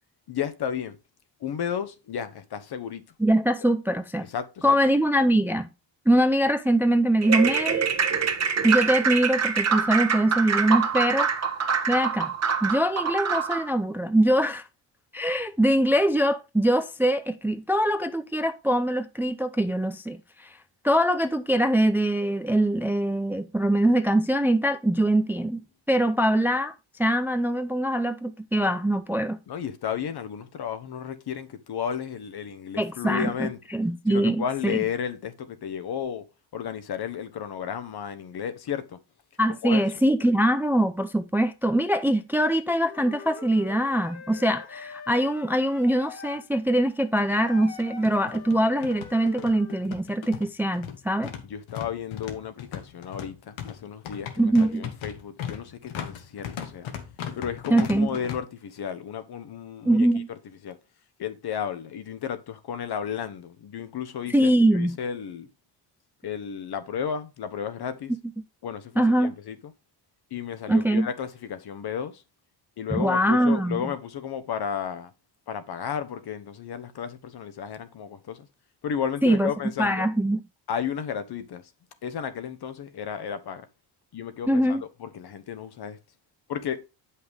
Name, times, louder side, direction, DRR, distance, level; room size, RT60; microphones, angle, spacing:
voice 1, 0.3-1.0 1.4-3.0 4.2-4.8 29.5-33.6 34.1-36.3 36.5-39.0 39.5-39.8 51.4-56.9 57.4-60.1 60.6-60.8 61.2-65.5 66.2-68.1 68.6-69.7 70.3-72.2 72.8-75.1 75.5-78.5 78.8-80.1 80.7-81.6 82.0-83.6 84.1-86.0 86.5-86.8, left 8 dB, 55° left, 1.1 m, -33 dB
voice 2, 3.2-4.3 4.6-5.7 6.1-7.9 8.6-11.3 11.9-12.3 12.6-14.6 15.1-20.5 20.8-26.7 27.0-29.4 32.8-34.8 39.4-51.3 54.4-54.9 57.7-58.1 59.8-60.3 64.3-65.0 69.0-69.3 70.7-71.1 72.9-73.9 79.2-79.5 79.8-80.4 84.5-84.8, right 1 dB, 5° right, 0.5 m, -23 dB
sound 1, 7.2-13.7, right 6 dB, 35° right, 1.3 m, -25 dB
Wind instrument woodwind instrument, 42.8-46.5 47.3-49.9, left 5 dB, 35° left, 1.8 m, -43 dB
sound 2, 46.3-46.4 46.7-46.8 47.6-58.4, left 8 dB, 80° left, 1.5 m, -38 dB
7.9 x 5.7 x 3.5 m
cardioid pair, 85°, 47 cm